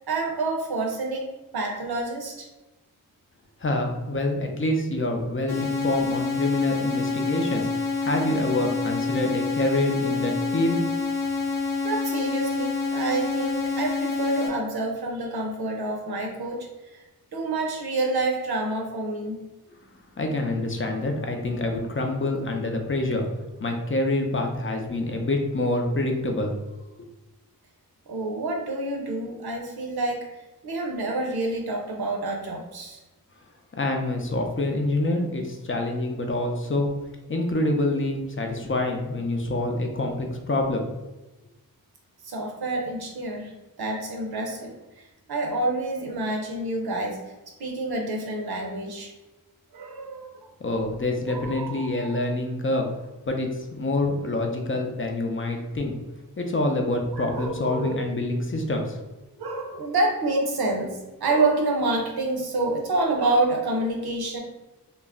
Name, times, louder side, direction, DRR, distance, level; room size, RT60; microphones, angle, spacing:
voice 1, 0.1-1.3 1.5-2.5 11.8-17.0 17.3-19.4 28.1-30.2 30.6-33.0 42.2-43.5 43.8-47.2 47.6-49.1 49.7-50.4 51.3-52.2 57.1-58.0 59.4-64.4, right 2 dB, 80° right, 1 dB, 0.7 m, -28 dB
voice 2, 3.6-10.8 20.2-23.3 23.6-26.6 33.8-36.9 37.3-40.9 50.6-52.9 53.2-55.9 56.4-59.0, left 2 dB, 35° left, 2 dB, 0.5 m, -26 dB
sound 1, 5.5-14.5, left 4 dB, 90° left, 0.8 m, -27 dB
2.3 x 2.0 x 3.5 m, 1.0 s
cardioid pair, 50°, 38 cm